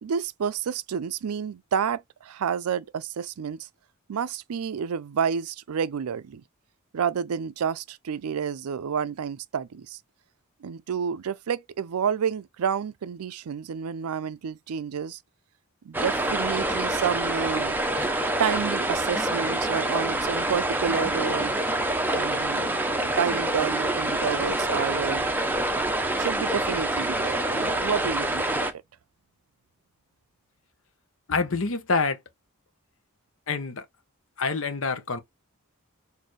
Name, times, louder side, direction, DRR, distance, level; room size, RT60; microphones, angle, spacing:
voice 1, 0.0-3.7 4.1-6.4 6.9-10.0 10.6-15.2 15.8-17.8 18.0-18.1 18.4-21.6 22.1-25.3 26.2-28.8, right 7 dB, 90° right, 0.4 m, -30 dB
sound 1, 15.9-28.7, right 1 dB, 10° right, 0.6 m, -26 dB
voice 2, 31.3-32.2 33.5-33.9 34.4-35.2, left 4 dB, 65° left, 0.9 m, -26 dB
6.4 x 2.7 x 3.1 m
head